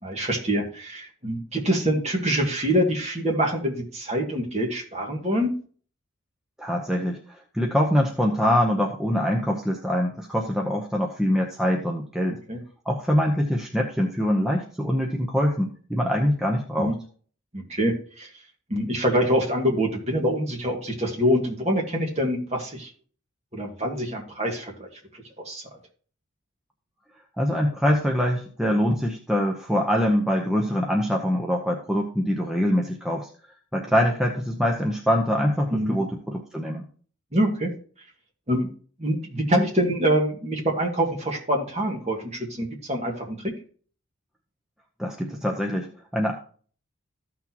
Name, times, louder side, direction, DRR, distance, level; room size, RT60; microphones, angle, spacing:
voice 1, 0.0-5.5 12.5-12.6 16.8-16.9 17.5-18.3 18.7-22.9 23.5-24.9 25.4-25.6 35.7-36.0 37.3-37.7 38.5-38.7 39.0-43.5, equal, 30° right, 0 dB, 2.0 m, -25 dB
voice 2, 6.6-12.4 12.9-16.9 27.4-33.3 33.7-36.9 45.0-46.3, equal, 5° right, 0 dB, 0.8 m, -24 dB
14.0 x 6.1 x 2.9 m, 0.43 s
head